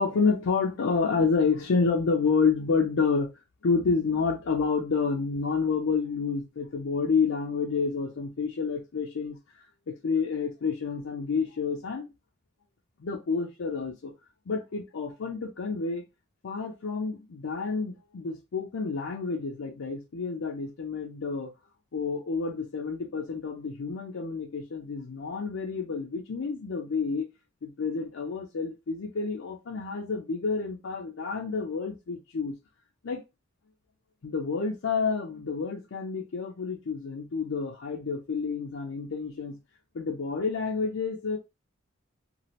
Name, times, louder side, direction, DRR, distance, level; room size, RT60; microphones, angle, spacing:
voice 1, 0.0-3.3 3.6-9.4 9.9-12.1 13.0-14.1 14.5-16.0 16.4-21.5 21.9-27.3 27.6-32.5 33.0-33.2 34.2-39.6 39.9-41.4, left 5 dB, 70° left, 0.5 m, -29 dB
3.0 x 2.4 x 2.7 m
head